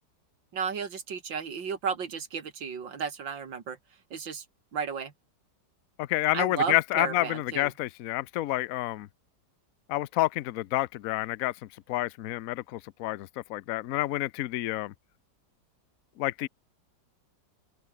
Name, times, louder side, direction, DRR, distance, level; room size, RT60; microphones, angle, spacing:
voice 1, 0.5-3.8 4.1-4.4 4.7-5.1 6.3-7.7, right 6 dB, 90° right, 2.9 m, -33 dB
voice 2, 6.0-9.1 9.9-11.5 11.9-14.9 16.2-16.5, left 17 dB, 65° left, 0.9 m, -29 dB
open air
omnidirectional pair, 2.0 m